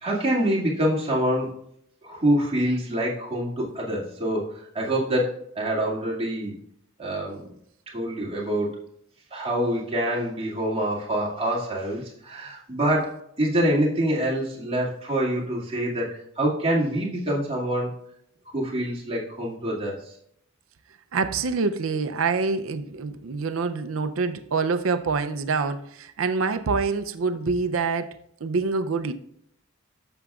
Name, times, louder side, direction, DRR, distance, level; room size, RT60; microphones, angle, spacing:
voice 1, 0.0-1.6 2.0-6.5 7.0-7.5 7.9-8.8 9.3-17.9 18.5-20.1, right 1 dB, 30° right, 2.3 m, -26 dB
voice 2, 21.1-28.1 28.4-29.1, right 4 dB, 90° right, 0.5 m, -26 dB
11.0 x 6.9 x 2.4 m
head